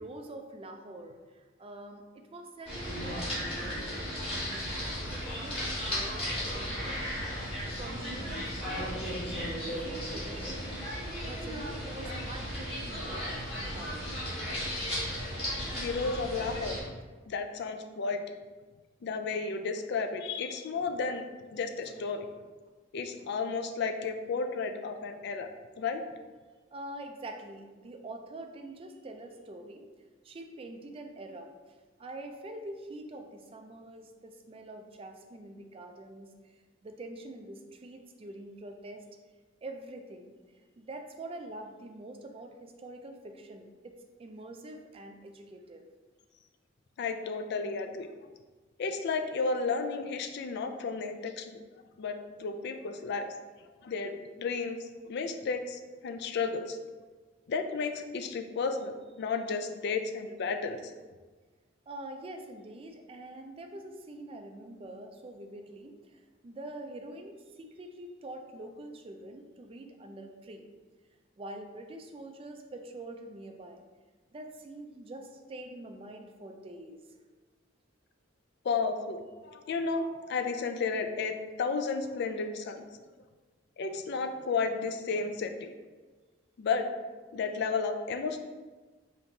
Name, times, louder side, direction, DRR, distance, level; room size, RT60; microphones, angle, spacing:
voice 1, 0.0-7.2 7.7-13.3 13.5-14.3 26.7-29.9 30.2-39.0 39.6-45.8 61.9-70.7 71.4-73.8 74.3-77.2, right 1 dB, 30° right, 4 dB, 0.4 m, -45 dB
sound 1, 2.7-16.8, equal, 30° left, 1.4 m, -35 dB
voice 2, 15.8-16.8 17.3-18.2 19.0-21.2 21.5-22.3 22.9-25.5 25.8-26.0 47.0-48.1 48.8-51.6 52.0-53.3 53.8-56.8 57.5-60.9 78.6-82.9 83.8-85.7 86.6-86.9 87.3-88.4, left 4 dB, 60° left, 7 dB, 0.3 m, -33 dB
5.2 x 2.9 x 2.7 m, 1.3 s
head